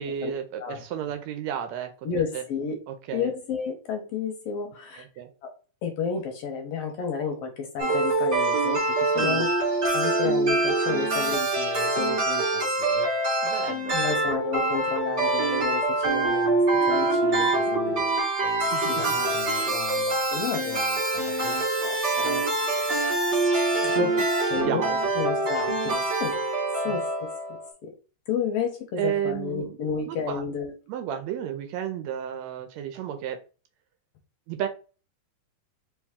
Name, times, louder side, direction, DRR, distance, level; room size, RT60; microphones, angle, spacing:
voice 1, 0.0-2.1 2.3-2.4 2.9-3.3 5.2-5.3 9.1-9.5 13.4-14.0 18.7-18.8 23.7-24.1 24.6-25.1 25.5-26.1 26.9-27.0 29.0-30.5 30.9-33.4 34.5-34.7, right 9 dB, 80° right, 7 dB, 1.7 m, -32 dB
voice 2, 2.0-2.8 3.1-5.0 5.4-5.5 5.8-9.5 9.9-13.1 13.9-23.2 23.8-24.2 24.5-25.9 26.2-26.4 26.8-27.9 28.3-30.7, left 5 dB, 70° left, 4 dB, 1.6 m, -32 dB
sound 1, 7.8-27.7, right 2 dB, 45° right, 0.9 m, -25 dB
sound 2, 16.7-18.0 18.7-19.5, right 6 dB, 60° right, 1.3 m, -43 dB
4.5 x 3.0 x 3.6 m, 0.36 s
omnidirectional pair, 3.3 m